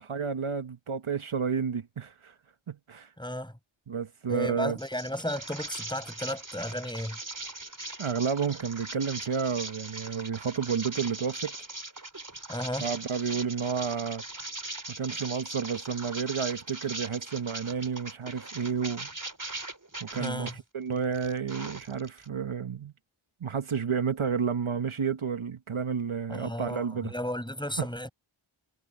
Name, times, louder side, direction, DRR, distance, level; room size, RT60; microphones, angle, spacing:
voice 1, 0.0-2.3 2.7-3.1 3.9-4.8 8.0-11.6 12.8-14.2 15.0-19.1 20.0-22.9 23.4-27.1 27.8-27.9, right 6 dB, 75° right, 1.1 m, -31 dB
voice 2, 3.2-3.5 4.3-7.2 12.5-12.9 20.2-20.5 26.3-28.1, left 1 dB, 10° left, 5.6 m, -34 dB
sound 1, 4.8-20.5 21.0-22.3, right 2 dB, 40° right, 3.7 m, -40 dB
wide cardioid pair, 45°, 50 cm